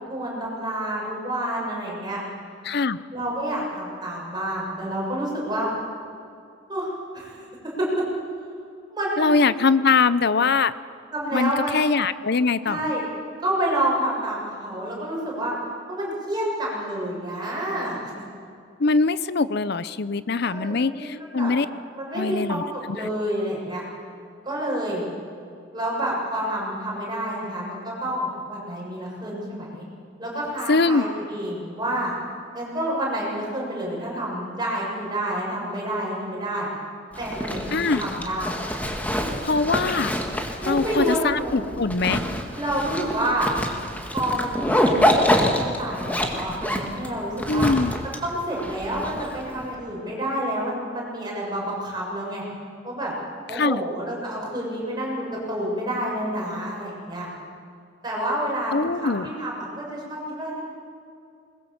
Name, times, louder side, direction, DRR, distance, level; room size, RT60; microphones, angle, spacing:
voice 1, 0.0-2.2 3.1-5.7 6.7-7.4 7.8-8.1 8.9-9.4 11.1-11.9 12.6-13.0 13.4-15.5 15.9-18.1 20.4-21.5 21.9-23.8 24.4-25.0 25.7-29.8 30.2-32.1 32.5-36.7 37.2-38.6 40.6-41.7 42.5-43.5 44.1-47.7 48.0-52.5 52.8-53.1 53.5-57.3 58.0-58.7 59.0-60.7, right 1 dB, 25° right, -4 dB, 7.0 m, -28 dB
voice 2, 2.6-3.0 9.2-10.7 11.3-12.8 18.8-21.7 22.1-22.6 23.0-23.1 30.7-31.1 37.7-38.0 39.4-40.1 40.7-42.2 47.5-47.9 53.5-53.8 58.7-59.3, left 4 dB, 60° left, 15 dB, 0.7 m, -22 dB
Zipper (clothing), 37.1-49.6, equal, 10° left, 1.9 m, -26 dB
21.5 x 21.0 x 7.3 m, 2.4 s
head